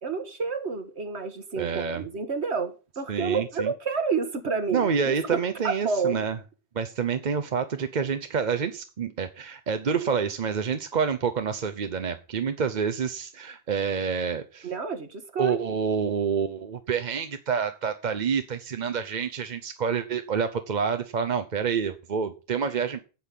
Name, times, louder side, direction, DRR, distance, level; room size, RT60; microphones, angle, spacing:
voice 1, 0.0-5.4 5.8-6.3 14.6-15.8, right 5 dB, 80° right, 1.9 m, -29 dB
voice 2, 1.6-2.1 3.1-3.7 4.7-6.4 6.7-14.7 15.4-23.0, right 6 dB, 45° right, 0.8 m, -28 dB
10.0 x 5.5 x 8.4 m
omnidirectional pair, 1.1 m